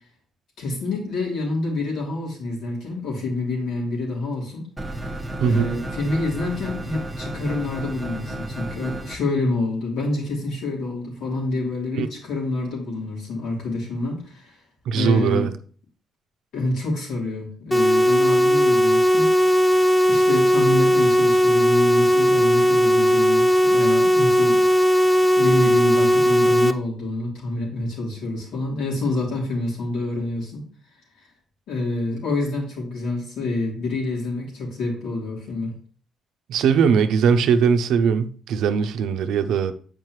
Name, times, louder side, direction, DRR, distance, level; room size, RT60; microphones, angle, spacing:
voice 1, 0.6-4.7 5.0-5.1 5.4-14.6 15.0-15.5 16.5-19.3 20.1-25.1 25.3-30.6 31.7-35.7, left 2 dB, 80° left, 3.3 m, -27 dB
sound 1, 4.8-9.2, right 1 dB, 10° right, 1.2 m, -33 dB
voice 2, 14.9-15.5 36.5-39.7, right 6 dB, 80° right, 0.6 m, -20 dB
sound 2, 17.7-26.7, equal, 10° left, 0.5 m, -17 dB
7.4 x 5.1 x 3.1 m
cardioid pair, 90°, 0 cm